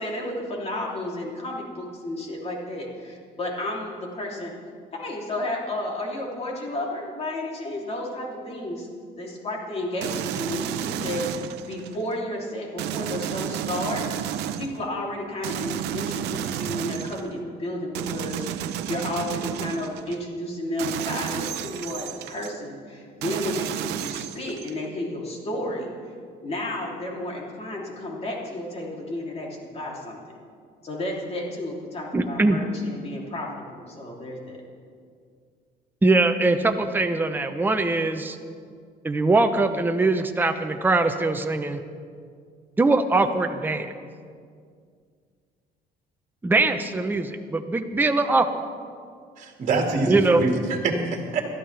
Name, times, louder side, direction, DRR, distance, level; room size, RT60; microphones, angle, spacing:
voice 1, 0.0-4.5 4.9-8.9 9.2-11.2 11.7-25.9 26.4-30.2 30.8-34.6, left 1 dB, 35° left, -2 dB, 3.2 m, -32 dB
sound 1, 10.0-12.0 12.8-14.9 15.4-17.3 17.9-20.2 20.8-22.5 23.2-24.9, right 10 dB, 85° right, 0.7 m, -31 dB
voice 2, 32.1-32.6 36.0-38.4 39.0-41.8 42.8-43.9 46.4-48.5 50.1-50.4, right 3 dB, 10° right, 6 dB, 0.8 m, -22 dB
voice 3, 49.4-51.4, right 3 dB, 45° right, 1 dB, 2.2 m, -25 dB
21.5 x 13.0 x 3.4 m, 2.1 s
cardioid pair, 110°, 17 cm